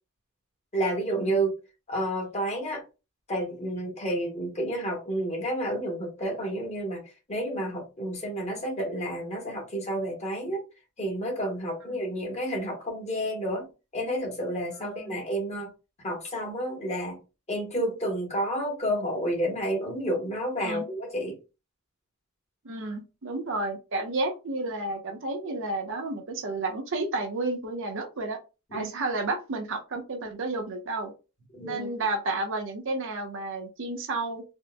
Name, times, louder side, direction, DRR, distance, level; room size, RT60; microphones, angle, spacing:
voice 1, 0.7-1.5 1.9-2.8 3.3-7.0 7.3-10.6 11.0-13.7 13.9-15.7 16.0-17.2 17.5-21.4 28.7-28.9 31.5-31.9, right 1 dB, 30° left, 1.1 m, -30 dB
voice 2, 14.8-15.2 20.6-20.9 22.6-28.4 28.7-31.1 31.6-34.4, right 2 dB, 60° right, 0.7 m, -31 dB
4.3 x 2.0 x 2.2 m
head